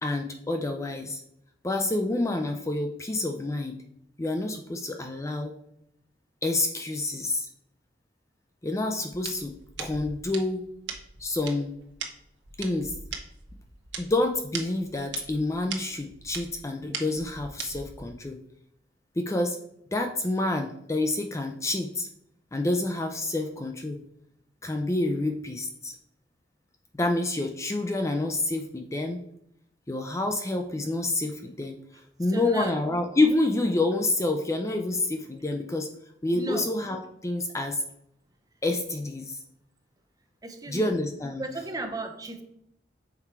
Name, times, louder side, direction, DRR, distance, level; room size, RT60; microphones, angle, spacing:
voice 1, 0.0-1.2 1.6-3.7 4.2-5.6 6.4-7.5 8.6-9.5 9.8-10.6 11.2-11.7 12.6-13.0 14.0-18.4 19.2-19.6 19.9-22.1 22.5-24.0 24.6-25.9 26.9-29.2 29.9-31.8 32.2-35.9 36.2-37.8 38.6-39.4 40.7-41.4, left 2 dB, 15° left, 4 dB, 0.4 m, -28 dB
sound 1, 9.1-18.2, right 6 dB, 85° right, 1.0 m, -40 dB
voice 2, 32.3-32.8 36.3-36.7 40.4-40.9 41.4-42.4, right 2 dB, 20° right, 5 dB, 0.8 m, -35 dB
5.9 x 4.4 x 4.6 m, 0.75 s
head